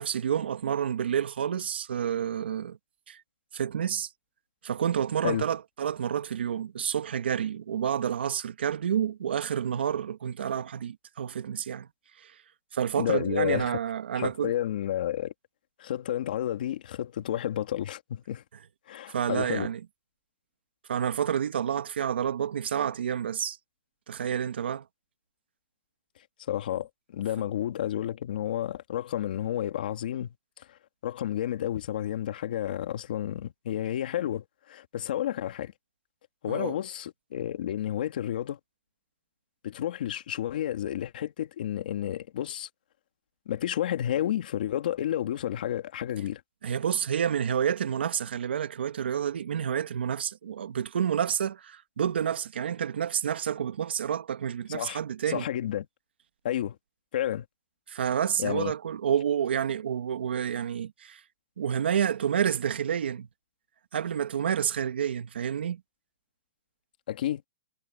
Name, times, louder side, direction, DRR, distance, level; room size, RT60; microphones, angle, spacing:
voice 1, 0.0-2.8 3.1-3.2 3.5-4.1 4.6-11.9 12.2-12.3 12.7-14.5 19.1-19.8 20.9-23.6 24.1-24.8 36.5-36.8 46.6-55.5 57.9-61.2 61.6-63.3 63.9-65.8, right 8 dB, 85° right, 1.7 m, -29 dB
voice 2, 13.0-13.8 14.2-15.3 15.8-18.4 18.9-19.7 26.5-30.3 30.6-35.7 36.4-38.6 39.6-42.7 43.5-46.4 54.7-55.0 55.3-55.9 56.4-56.8 57.1-57.4 58.4-58.7 67.1-67.4, left 11 dB, 55° left, 2.4 m, -31 dB
hypercardioid pair, 170°, 6 cm